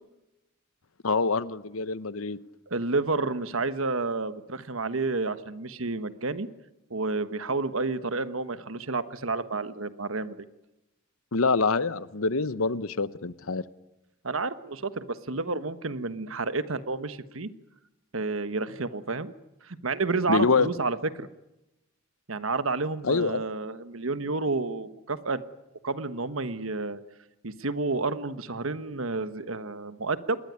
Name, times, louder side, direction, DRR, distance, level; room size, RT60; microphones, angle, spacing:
voice 1, 1.0-2.4 11.3-13.6 20.3-20.7 23.0-23.4, left 4 dB, 85° left, 15 dB, 1.0 m, -25 dB
voice 2, 2.7-6.5 6.9-10.4 14.2-17.5 18.1-19.3 19.7-21.3 22.3-25.4 25.8-27.0 27.4-30.4, right 3 dB, 75° right, 12 dB, 1.3 m, -30 dB
27.0 x 20.0 x 9.6 m, 0.95 s
head